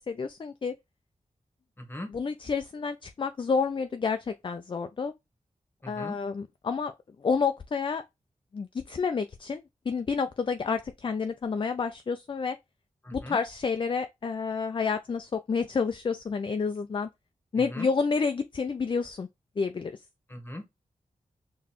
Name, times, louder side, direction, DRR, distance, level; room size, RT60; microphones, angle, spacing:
voice 1, 0.1-0.8 2.1-5.1 5.9-6.9 7.2-8.0 8.5-9.6 9.9-12.6 13.1-17.1 17.5-19.3 19.6-19.9, left 5 dB, 35° left, 0.4 m, -29 dB
voice 2, 1.8-2.1 5.8-6.2 13.0-13.4 17.5-17.9 20.3-20.6, left 1 dB, 15° left, 1.2 m, -39 dB
4.0 x 3.1 x 2.9 m
cardioid pair, 45°, 14 cm